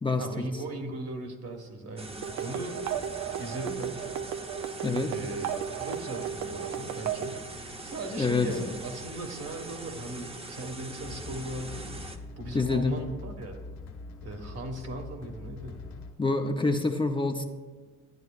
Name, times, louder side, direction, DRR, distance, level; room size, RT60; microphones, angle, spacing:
voice 1, 0.2-2.8 3.4-4.0 5.0-7.4 7.8-12.1 12.4-13.6 14.2-15.8, right 1 dB, 55° right, 3 dB, 1.4 m, -38 dB
sound 1, 2.0-12.2, right 2 dB, 20° right, 0.7 m, -42 dB
sound 2, 2.2-7.4, right 9 dB, 80° right, 0.5 m, -35 dB
voice 2, 8.2-8.5 12.5-13.0 16.2-17.5, left 3 dB, 15° left, 3 dB, 0.6 m, -26 dB
sound 3, 11.0-16.1, left 3 dB, 60° left, 1.7 m, -43 dB
11.0 x 9.5 x 2.4 m, 1.3 s
cardioid pair, 90°, 30 cm